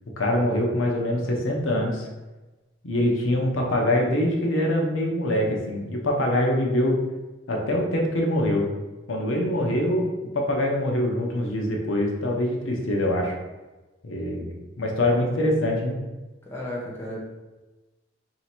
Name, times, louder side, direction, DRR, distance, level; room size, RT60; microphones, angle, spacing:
voice 1, 0.2-2.1 2.8-7.0 7.5-8.7 9.1-10.1 10.3-13.3 14.0-15.9, left 1 dB, 80° left, 0 dB, 0.7 m, -24 dB
voice 2, 16.5-17.2, left 1 dB, 15° left, -5 dB, 0.7 m, -33 dB
3.2 x 2.8 x 4.3 m, 1.1 s
head